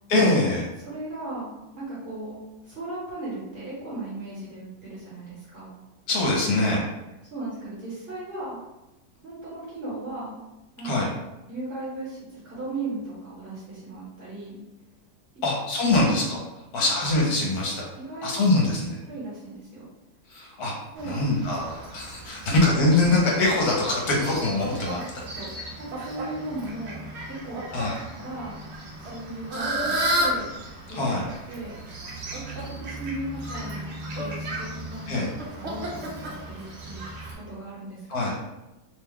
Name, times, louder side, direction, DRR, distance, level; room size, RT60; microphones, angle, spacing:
voice 1, 0.1-0.7 6.1-6.9 10.8-11.1 15.4-16.4 16.7-17.9 18.2-19.0 20.3-20.7 21.0-25.0 27.7-27.9 30.9-31.2 35.1-35.3 38.1-38.4, left 2 dB, 65° left, -2 dB, 1.2 m, -23 dB
voice 2, 0.8-5.8 7.3-8.6 9.2-10.4 10.8-11.1 11.5-14.6 15.3-15.4 16.8-16.9 18.0-18.3 19.0-19.8 20.9-21.2 22.4-22.6 24.6-25.0 25.3-25.5 25.8-27.6 28.0-28.6 29.0-30.5 30.8-31.0 31.5-31.7 32.5-35.1 35.6-38.2, right 2 dB, 40° right, -9 dB, 1.1 m, -37 dB
Fowl, 21.0-37.3, right 1 dB, 55° right, 0.7 m, -34 dB
2.9 x 2.2 x 3.5 m, 0.98 s
omnidirectional pair, 1.9 m